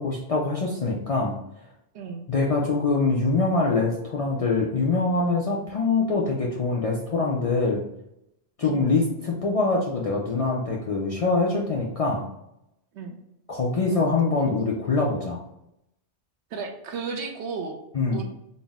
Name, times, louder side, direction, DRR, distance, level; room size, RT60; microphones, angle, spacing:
voice 1, 0.0-1.3 2.3-7.8 8.6-12.2 13.5-15.4 17.9-18.2, left 3 dB, 55° left, -3 dB, 0.4 m, -24 dB
voice 2, 16.5-17.8 18.1-18.2, right 5 dB, 80° right, 4 dB, 0.9 m, -33 dB
4.1 x 2.0 x 3.5 m, 0.82 s
omnidirectional pair, 1.1 m